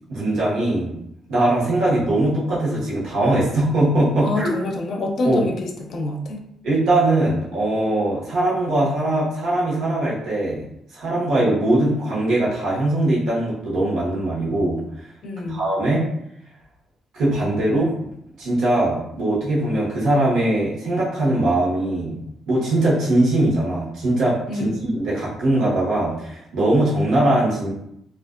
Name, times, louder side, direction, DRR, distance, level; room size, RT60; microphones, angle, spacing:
voice 1, 0.1-0.9 1.3-4.5 5.2-5.5 6.6-10.6 10.9-14.8 15.4-16.0 17.1-18.1 18.4-22.2 22.5-24.4 24.9-27.7, right 1 dB, 80° right, -6 dB, 1.0 m, -21 dB
voice 2, 4.2-6.4 15.2-15.6 24.5-24.9, left 2 dB, 60° left, 2 dB, 0.5 m, -27 dB
2.4 x 2.1 x 2.4 m, 0.76 s
cardioid pair, 90°, 0 cm